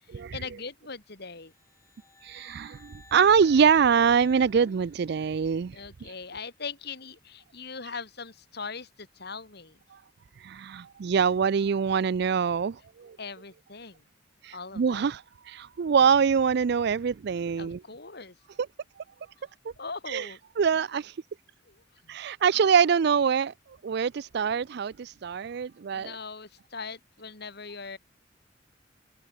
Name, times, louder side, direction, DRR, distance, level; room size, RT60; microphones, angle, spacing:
voice 1, 0.1-1.5 5.7-9.8 13.2-14.0 14.5-15.1 17.6-18.4 19.8-20.4 21.7-22.1 25.9-28.0, left 4 dB, 55° left, 2.7 m, -40 dB
sound 1, 1.5-5.5, left 3 dB, 15° left, 5.6 m, -54 dB
voice 2, 2.2-6.1 9.9-10.0 10.4-13.2 14.4-17.8 20.1-21.2 22.1-23.5 23.8-26.2, right 6 dB, 60° right, 0.4 m, -24 dB
open air
head